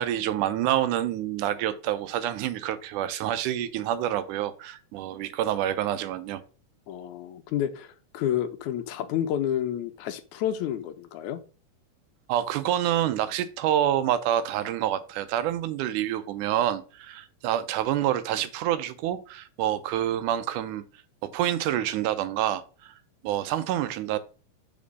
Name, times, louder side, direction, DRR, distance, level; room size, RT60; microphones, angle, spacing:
voice 1, 0.0-6.4 12.3-20.8 21.2-22.9 23.2-24.2, right 11 dB, 85° right, 2.2 m, -27 dB
voice 2, 6.9-11.4, left 10 dB, 75° left, 2.0 m, -30 dB
5.3 x 4.9 x 5.3 m
omnidirectional pair, 3.6 m